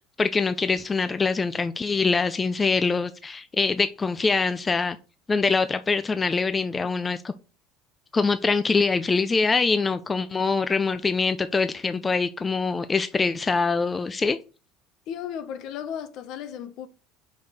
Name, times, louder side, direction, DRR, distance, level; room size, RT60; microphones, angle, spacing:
voice 1, 0.2-5.0 5.3-7.3 8.1-14.4, left 4 dB, 20° left, 0.4 m, -24 dB
voice 2, 15.1-16.9, left 9 dB, 65° left, 1.0 m, -35 dB
5.2 x 4.4 x 5.2 m
supercardioid pair, 115°, 0 cm